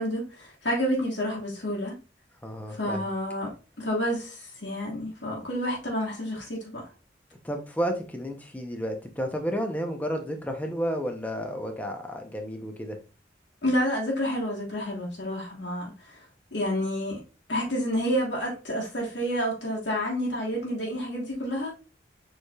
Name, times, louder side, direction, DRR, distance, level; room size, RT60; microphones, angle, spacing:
voice 1, 0.0-2.0 2.7-3.5 3.8-6.9 13.6-16.2 16.5-17.2 17.5-21.7, equal, 85° left, 1.3 m, -29 dB
voice 2, 2.4-3.1 7.4-13.0, equal, 10° left, 0.6 m, -31 dB
6.8 x 3.2 x 2.3 m
head